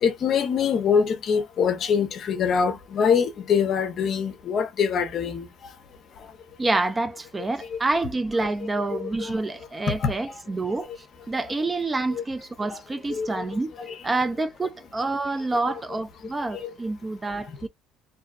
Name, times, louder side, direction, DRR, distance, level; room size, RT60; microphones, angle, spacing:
voice 1, 0.0-5.5 8.4-8.5 9.0-9.1 10.0-10.1 12.2-12.3 12.7-12.8 13.1-13.4 16.5-16.7, left 6 dB, 50° left, 0.6 m, -24 dB
voice 2, 6.6-13.7 14.0-17.7, right 2 dB, 20° right, 0.4 m, -28 dB
2.6 x 2.2 x 2.3 m
cardioid pair, 120°, 0 cm